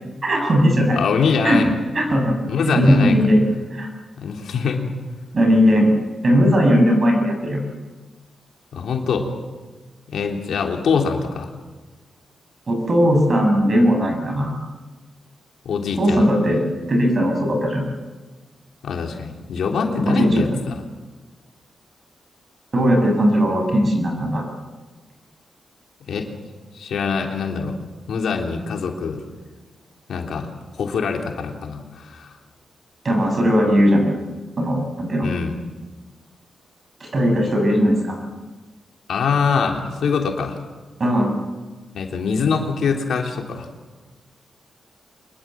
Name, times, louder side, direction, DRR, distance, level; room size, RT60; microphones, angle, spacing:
voice 1, 0.2-1.0 1.4-1.6 1.9-2.3 2.7-3.4 3.7-3.9 5.3-5.9 6.2-7.6 12.7-14.6 16.0-16.6 16.9-17.8 20.0-20.6 22.7-24.4 33.0-34.1 34.6-35.3 37.0-38.2 41.0-41.3, equal, 35° right, 3 dB, 6.9 m, -18 dB
voice 2, 0.9-1.7 2.5-3.2 4.2-4.9 8.7-9.3 10.1-11.5 15.7-16.3 18.8-20.8 26.1-26.3 26.7-27.8 28.1-29.2 30.1-30.5 30.8-32.3 35.2-35.6 39.1-40.6 41.9-43.7, left 5 dB, 80° left, 2 dB, 3.4 m, -23 dB
25.5 x 21.5 x 7.6 m, 1.3 s
wide cardioid pair, 135°, 0 cm